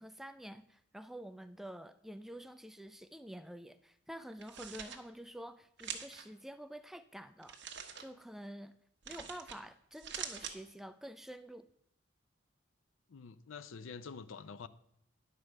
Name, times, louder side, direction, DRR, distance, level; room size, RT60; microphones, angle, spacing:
voice 1, 0.0-7.6 8.0-8.8 9.1-11.6, equal, ahead, 11 dB, 0.3 m, -48 dB
sound 1, 4.3-5.0 5.8-6.2 7.4-8.0 9.0-9.6 9.9-10.6, right 7 dB, 60° right, 1.1 m, -44 dB
voice 2, 13.1-14.7, left 5 dB, 80° left, 15 dB, 0.5 m, -47 dB
10.5 x 4.7 x 6.5 m, 0.77 s
head